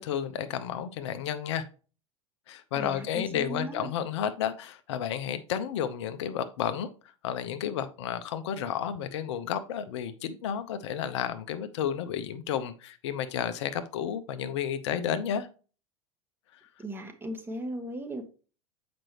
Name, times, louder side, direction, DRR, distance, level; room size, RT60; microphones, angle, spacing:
voice 1, 0.0-1.7 2.5-6.9 7.2-15.5, left 9 dB, 55° left, 0.6 m, -32 dB
voice 2, 2.7-3.9 16.8-18.2, right 1 dB, 10° right, 1.2 m, -37 dB
7.5 x 5.1 x 3.0 m
figure-of-eight pair, 80°, 17 cm